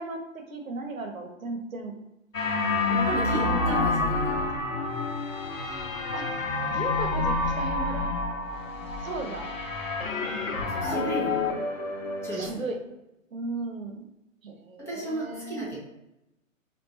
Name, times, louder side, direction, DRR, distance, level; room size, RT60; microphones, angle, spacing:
voice 1, 0.0-2.0 2.9-4.1 6.1-6.3 6.7-8.1 9.0-9.5 10.8-11.3 12.3-12.8 13.3-14.0 14.4-15.7, right 3 dB, 80° right, 3 dB, 0.9 m, -36 dB
sound 1, 2.3-12.5, left 3 dB, 75° left, 0.8 m, -28 dB
voice 2, 3.0-4.4 10.6-11.5 12.2-12.6 14.9-15.8, right 1 dB, 5° left, -7 dB, 0.7 m, -34 dB
4.6 x 2.5 x 2.8 m, 0.91 s
figure-of-eight pair, 125°, 40 cm